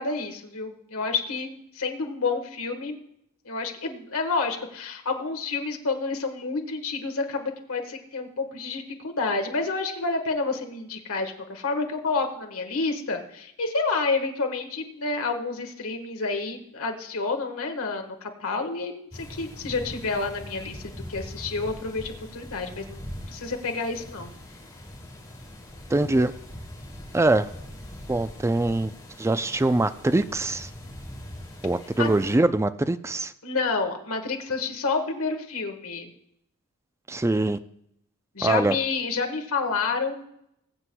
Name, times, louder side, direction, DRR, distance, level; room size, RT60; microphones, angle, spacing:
voice 1, 0.0-2.9 3.4-24.3 32.0-32.1 33.4-36.1 38.3-40.3, left 4 dB, 65° left, 4 dB, 1.5 m, -29 dB
sound 1, 19.1-32.4, left 1 dB, 15° left, 2.6 m, -42 dB
voice 2, 25.9-26.3 27.1-27.5 28.1-28.9 29.2-30.7 31.6-33.3 37.1-37.6 38.4-38.8, right 2 dB, 10° right, 12 dB, 0.4 m, -23 dB
21.0 x 7.9 x 2.3 m, 0.76 s
head